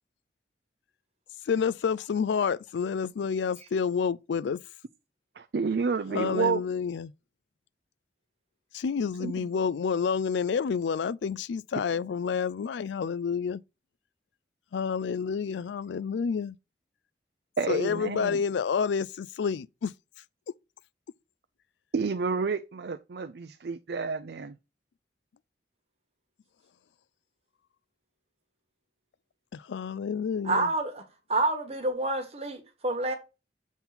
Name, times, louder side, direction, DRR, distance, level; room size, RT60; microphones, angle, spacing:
voice 1, 1.5-4.6 6.1-7.1 8.7-13.6 14.7-16.6 17.7-19.9 29.5-30.7, left 6 dB, 80° left, 0.4 m, -29 dB
voice 2, 5.4-6.6 9.2-9.5 17.6-18.4 21.9-24.6, right 4 dB, 65° right, 0.4 m, -30 dB
voice 3, 30.4-31.0 31.3-33.1, right 2 dB, 35° right, 1.4 m, -28 dB
7.2 x 3.9 x 4.0 m
head